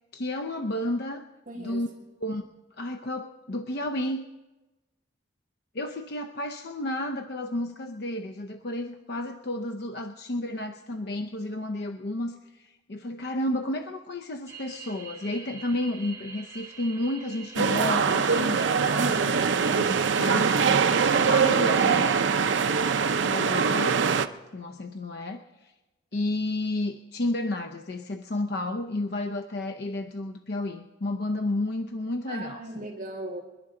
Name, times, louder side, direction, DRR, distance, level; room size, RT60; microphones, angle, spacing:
voice 1, 0.1-1.2 1.5-1.9 2.2-2.5 2.8-4.2 5.7-18.6 19.3-20.5 21.2-22.2 23.2-24.0 24.5-25.7 26.1-32.9, left 1 dB, 55° left, 7 dB, 0.6 m, -31 dB
voice 2, 1.5-1.8 18.5-19.9 32.3-33.4, right 1 dB, 45° right, -2 dB, 2.2 m, -36 dB
sound 1, 14.5-22.2, right 5 dB, 15° right, 3.0 m, -44 dB
sound 2, 17.6-24.3, right 6 dB, 70° right, 0.6 m, -23 dB
26.5 x 11.0 x 3.8 m, 1.1 s
head